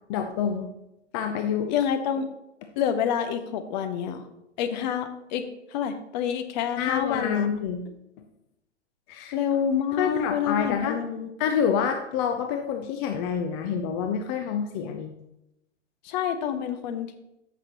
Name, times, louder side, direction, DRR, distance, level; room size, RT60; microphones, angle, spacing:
voice 1, 0.1-0.7 1.1-1.7 6.8-7.8 9.1-9.4 9.9-11.0 11.4-15.1, left 7 dB, 20° left, 4 dB, 0.4 m, -27 dB
voice 2, 1.7-2.3 2.8-4.3 4.6-5.4 5.7-7.5 9.3-11.3 16.0-17.1, left 8 dB, 40° left, 8 dB, 0.9 m, -28 dB
13.5 x 5.9 x 2.9 m, 0.89 s
figure-of-eight pair, 105°, 36 cm